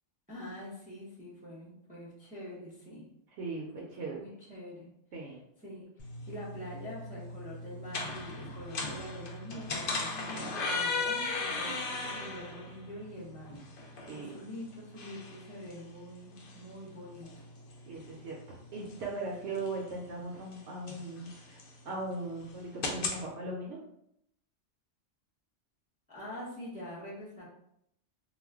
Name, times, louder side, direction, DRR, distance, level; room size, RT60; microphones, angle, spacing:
voice 1, 0.3-3.1 3.7-4.9 5.6-17.3 26.1-27.4, equal, 10° right, -7 dB, 0.5 m, -45 dB
voice 2, 3.4-4.2 5.1-5.4 14.0-14.4 17.9-23.8, right 2 dB, 75° right, -3 dB, 0.9 m, -39 dB
sound 1, 6.0-23.2, left 3 dB, 60° left, 0.7 m, -39 dB
2.4 x 2.1 x 3.4 m, 0.77 s
omnidirectional pair, 1.2 m